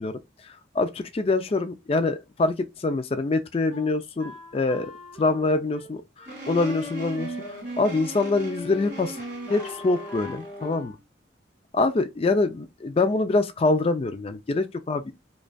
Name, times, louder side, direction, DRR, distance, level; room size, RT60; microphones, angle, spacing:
voice 1, 0.0-4.9 5.2-9.2 9.5-10.9 11.7-15.1, left 3 dB, 30° left, 0.3 m, -25 dB
Wind instrument woodwind instrument, 3.7-7.9 8.2-8.4 8.7-11.0, left 2 dB, 5° right, 2.2 m, -45 dB
sound 1, 6.3-10.8, equal, 45° right, 2.1 m, -37 dB
5.0 x 2.3 x 2.2 m
head